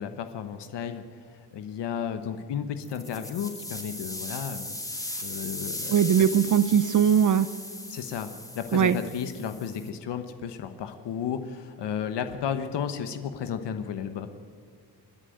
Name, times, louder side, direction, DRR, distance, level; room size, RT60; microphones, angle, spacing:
voice 1, 0.0-4.8 5.2-6.1 7.9-8.3 8.5-14.3, left 8 dB, 75° left, 8 dB, 1.2 m, -33 dB
sound 1, 2.8-9.9, left 1 dB, 10° left, 2.1 m, -38 dB
voice 2, 5.9-7.5 8.7-9.0, right 8 dB, 45° right, 14 dB, 0.7 m, -20 dB
28.5 x 10.5 x 9.2 m, 2.1 s
cardioid pair, 140°, 41 cm